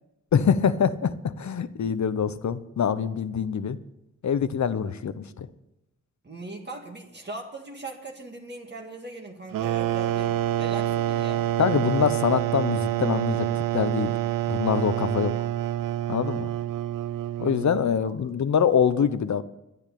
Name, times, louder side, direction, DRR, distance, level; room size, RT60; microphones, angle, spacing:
voice 1, 0.3-3.8 4.2-5.5 11.6-14.1 14.5-15.3 16.1-16.5 17.4-19.4, left 7 dB, 60° left, 13 dB, 0.9 m, -24 dB
voice 2, 6.2-11.5 18.0-18.1, right 2 dB, 35° right, 1 dB, 1.9 m, -39 dB
sound 1, 9.5-18.0, right 12 dB, 85° right, 0.5 m, -27 dB
11.5 x 10.5 x 8.5 m, 0.89 s
wide cardioid pair, 105°, 32 cm